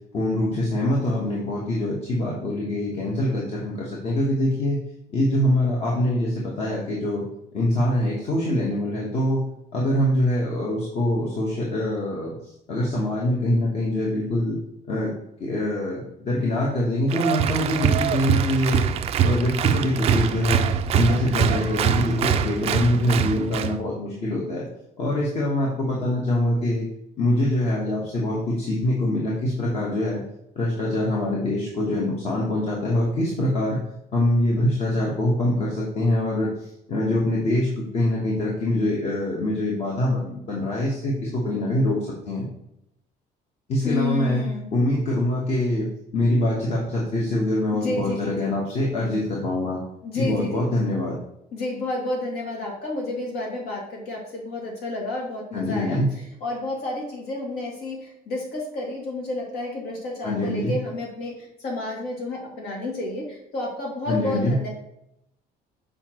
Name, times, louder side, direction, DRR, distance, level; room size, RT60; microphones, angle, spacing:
voice 1, 0.1-4.8 5.1-7.2 7.5-9.4 9.7-14.6 14.9-15.1 15.4-18.9 19.2-20.7 20.9-24.7 25.0-26.9 27.2-30.2 30.5-33.8 34.1-42.5 43.7-44.4 44.7-49.8 50.1-51.2 55.5-56.1 60.2-60.7 64.1-64.6, left 1 dB, 40° left, -4 dB, 1.2 m, -24 dB
Applause, 17.1-23.8, right 8 dB, 35° right, 0.3 m, -23 dB
voice 2, 43.8-44.6 47.7-48.5 50.0-50.7 51.5-56.0 56.4-61.3 61.6-64.7, left 2 dB, 70° left, -2 dB, 2.4 m, -30 dB
6.8 x 5.0 x 3.0 m, 0.80 s
cardioid pair, 170°, 17 cm